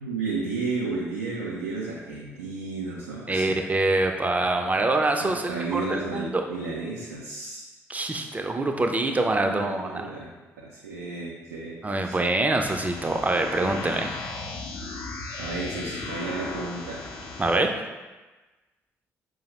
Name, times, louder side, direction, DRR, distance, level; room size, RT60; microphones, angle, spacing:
voice 1, 0.0-3.6 5.2-7.6 9.4-10.3 10.6-11.8 12.0-12.2 15.4-17.0, right 3 dB, 90° right, -5 dB, 0.4 m, -33 dB
voice 2, 3.3-6.4 7.9-10.1 11.8-14.1 17.4-17.7, right 2 dB, 20° right, 4 dB, 0.4 m, -25 dB
sound 1, 12.6-17.6, left 3 dB, 55° left, 0.5 m, -36 dB
4.7 x 2.0 x 2.9 m, 1.2 s
hypercardioid pair, 45°, 7 cm